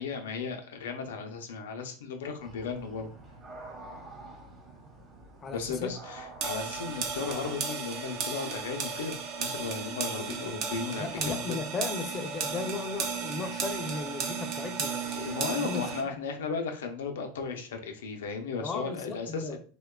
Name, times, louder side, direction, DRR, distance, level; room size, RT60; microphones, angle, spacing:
voice 1, 0.0-3.1 5.5-11.6 15.2-19.6, left 5 dB, 90° left, 4 dB, 0.5 m, -35 dB
sound 1, 2.4-7.6, right 2 dB, 25° right, 0.9 m, -47 dB
voice 2, 5.4-5.9 11.0-15.8 18.6-19.6, left 4 dB, 30° left, 7 dB, 0.4 m, -36 dB
sound 2, 6.4-16.0, right 6 dB, 50° right, 0.5 m, -35 dB
2.9 x 2.2 x 2.2 m, 0.41 s
supercardioid pair, 115°, 0 cm